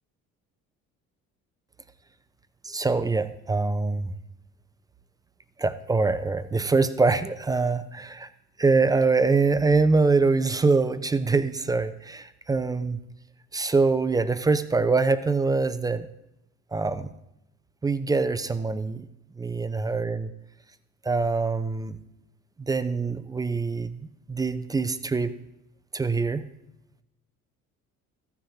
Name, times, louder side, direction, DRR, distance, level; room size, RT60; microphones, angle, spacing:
voice 1, 2.6-4.1 5.6-8.3 8.6-13.0 13.5-16.1 16.7-17.1 17.8-19.1 19.4-20.3 21.0-22.0 22.7-25.3 25.9-26.4, right 4 dB, 10° right, 13 dB, 0.3 m, -24 dB
15.0 x 5.9 x 2.7 m, 0.84 s
figure-of-eight pair, 50°, 41 cm